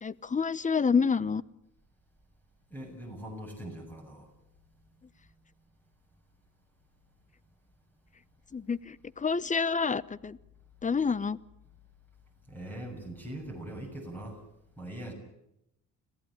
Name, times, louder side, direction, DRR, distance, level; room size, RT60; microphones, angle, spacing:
voice 1, 0.0-1.4 8.5-10.4 10.8-11.4, left 5 dB, 25° left, 20 dB, 0.8 m, -28 dB
voice 2, 2.7-4.3 12.5-14.4 14.8-15.1, right 1 dB, 5° left, 3 dB, 6.9 m, -41 dB
26.0 x 16.0 x 10.0 m, 0.83 s
cardioid pair, 90°, 30 cm